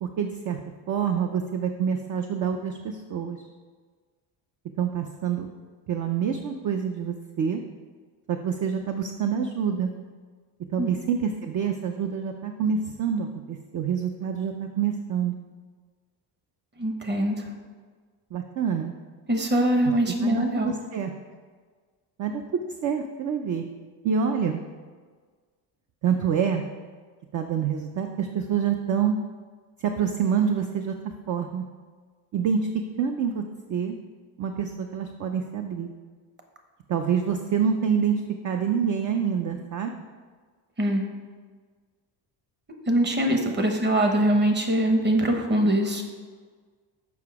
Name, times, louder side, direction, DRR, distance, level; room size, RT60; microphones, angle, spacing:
voice 1, 0.0-0.6 0.9-3.5 4.8-5.5 5.9-7.6 8.3-9.9 10.7-15.3 18.3-18.9 19.8-19.9 20.2-21.1 22.2-23.6 24.0-24.6 26.0-26.6 27.3-29.2 29.8-31.6 32.3-32.7 33.0-33.4 33.7-34.0 34.4-35.9 36.9-39.9 43.5-43.6, right 7 dB, 45° right, 5 dB, 0.5 m, -27 dB
voice 2, 16.8-17.3 19.3-20.7 40.8-41.0 42.9-46.0, right 1 dB, 25° right, 4 dB, 1.0 m, -22 dB
7.1 x 5.8 x 4.7 m, 1.5 s
cardioid pair, 140°, 43 cm